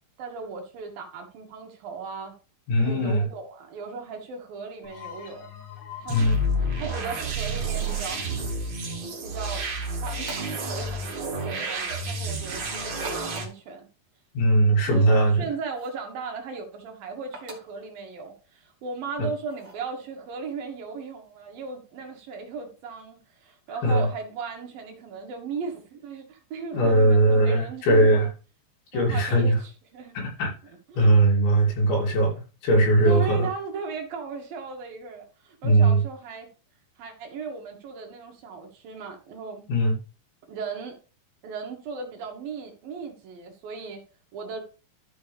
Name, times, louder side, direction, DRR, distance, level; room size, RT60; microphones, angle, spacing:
voice 1, 0.2-2.3 2.8-5.5 6.0-8.3 8.7-8.8 9.2-9.6 10.0-13.9 14.8-15.1 15.4-28.3 28.9-30.2 30.9-31.1 33.0-36.5 37.0-39.6 40.5-41.0 41.4-44.0 44.3-44.6, right 4 dB, 60° right, 2 dB, 3.0 m, -37 dB
voice 2, 2.7-3.3 6.1-6.4 14.4-15.5 19.2-19.3 23.8-24.1 26.7-28.3 28.9-29.6 30.2-30.5 31.0-33.5 35.6-36.0 39.7-40.0, right 1 dB, 80° left, -2 dB, 5.2 m, -20 dB
sound 1, 4.8-10.3, left 10 dB, 55° left, 3.1 m, -44 dB
sound 2, 6.1-13.4, right 1 dB, 85° right, 1.0 m, -30 dB
sound 3, 7.7-8.1 10.1-10.6 11.2-11.6 12.9-13.6 15.7-16.1 17.3-17.8 19.5-19.9, right 2 dB, 25° right, 2.2 m, -44 dB
13.5 x 6.1 x 3.4 m, 0.34 s
omnidirectional pair, 5.1 m